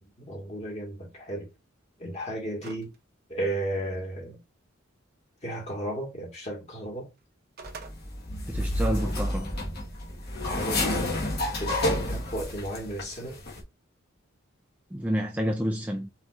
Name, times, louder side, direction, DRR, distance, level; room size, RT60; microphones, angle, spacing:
voice 1, 0.0-1.5 2.0-2.9 3.3-4.4 5.4-7.1 10.4-11.2 11.6-13.4, right 1 dB, 35° left, 2.0 m, -34 dB
sound 1, 2.6-3.0 3.4-3.5 7.2-8.0, right 4 dB, 50° right, 0.7 m, -43 dB
sound 2, 7.6-13.0 13.3-13.6, left 1 dB, 50° left, 1.5 m, -30 dB
voice 2, 8.5-9.5 14.9-16.1, equal, 10° right, 0.4 m, -29 dB
5.4 x 3.1 x 2.5 m
head